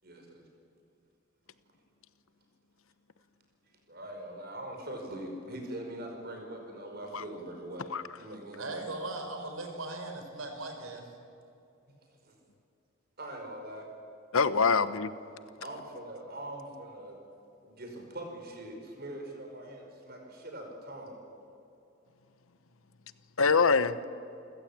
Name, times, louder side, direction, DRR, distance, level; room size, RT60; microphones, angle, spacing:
voice 1, 0.0-0.4 3.9-8.8 13.2-13.9 15.6-17.2 17.6-21.2, right 1 dB, 45° right, 2 dB, 5.4 m, -42 dB
voice 2, 8.6-11.1, right 2 dB, 80° right, 4 dB, 4.5 m, -38 dB
voice 3, 14.3-15.1 23.4-24.1, left 5 dB, 85° left, 14 dB, 1.0 m, -24 dB
29.0 x 15.5 x 8.8 m, 2.7 s
head